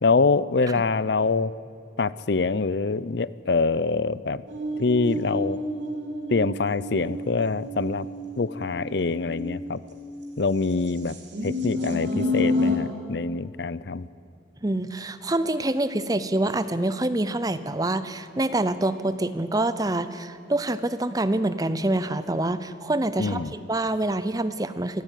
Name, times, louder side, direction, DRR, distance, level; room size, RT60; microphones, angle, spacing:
voice 1, 0.0-1.5 2.0-4.4 4.8-5.6 6.3-8.1 8.4-9.8 10.4-11.2 11.4-14.1 23.2-23.5, left 4 dB, 60° left, 18 dB, 0.6 m, -25 dB
sound 1, 4.5-10.2 10.9-12.8, left 2 dB, 70° right, 3.4 m, -29 dB
voice 2, 14.6-25.0, right 1 dB, 20° right, 12 dB, 0.7 m, -26 dB
24.5 x 14.0 x 9.2 m, 2.4 s
head